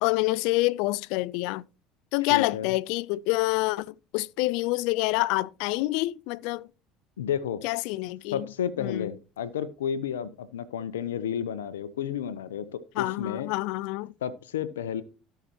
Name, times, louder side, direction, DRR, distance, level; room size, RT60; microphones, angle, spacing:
voice 1, 0.0-1.6 2.1-6.7 7.6-8.5 8.8-9.1 13.0-14.1, left 20 dB, 70° left, 0.3 m, -27 dB
voice 2, 2.3-2.7 7.2-7.6 8.3-13.5 14.2-15.0, left 8 dB, 85° left, 0.7 m, -32 dB
17.0 x 5.8 x 2.9 m
hypercardioid pair, 70°, 0 cm